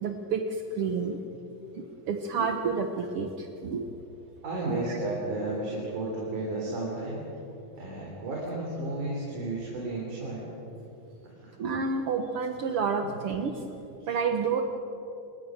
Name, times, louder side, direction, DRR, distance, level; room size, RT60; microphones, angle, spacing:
voice 1, 0.0-1.2 1.7-3.9 4.7-5.0 11.6-13.6 14.1-14.6, right 5 dB, 85° right, 5 dB, 1.2 m, -29 dB
voice 2, 4.4-7.2 7.8-10.4 11.4-11.5 13.1-13.2, right 2 dB, 55° right, -3 dB, 5.2 m, -33 dB
27.5 x 21.5 x 6.5 m, 2.9 s
omnidirectional pair, 4.3 m